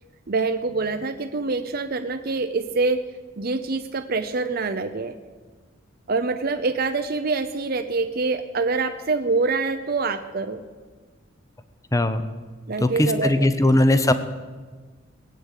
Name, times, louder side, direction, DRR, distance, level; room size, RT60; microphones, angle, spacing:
voice 1, 0.3-3.0 3.4-5.2 6.1-10.6 12.7-13.5, right 3 dB, 50° right, 7 dB, 0.7 m, -25 dB
voice 2, 11.9-12.2 12.8-14.1, left 1 dB, 15° left, 10 dB, 0.9 m, -19 dB
18.0 x 8.8 x 8.3 m, 1.4 s
head